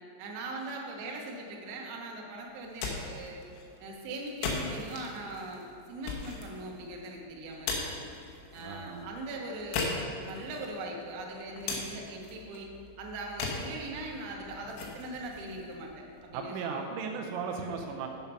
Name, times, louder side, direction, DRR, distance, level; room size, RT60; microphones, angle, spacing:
voice 1, 0.2-3.4 3.8-8.0 8.5-12.7 13.0-16.9 17.5-17.8, right 2 dB, 70° right, 0 dB, 2.8 m, -40 dB
sound 1, 2.5-16.5, left 4 dB, 85° left, 3.8 m, -40 dB
voice 2, 8.6-9.1 16.3-18.1, right 5 dB, 90° right, 2 dB, 2.6 m, -36 dB
8.3 x 7.2 x 5.4 m, 2.8 s
omnidirectional pair, 5.9 m